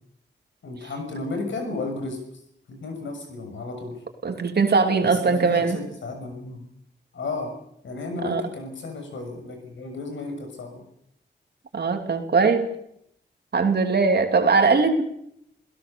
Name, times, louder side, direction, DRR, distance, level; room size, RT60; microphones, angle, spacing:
voice 1, 0.6-2.2 2.7-4.0 5.0-6.6 7.1-7.5 7.8-10.8, left 3 dB, 80° left, 5 dB, 6.4 m, -33 dB
voice 2, 4.2-5.8 8.2-8.4 11.7-12.7 13.5-15.0, right 4 dB, 60° right, 5 dB, 2.9 m, -20 dB
28.0 x 16.5 x 6.9 m, 0.74 s
wide cardioid pair, 90°, 19 cm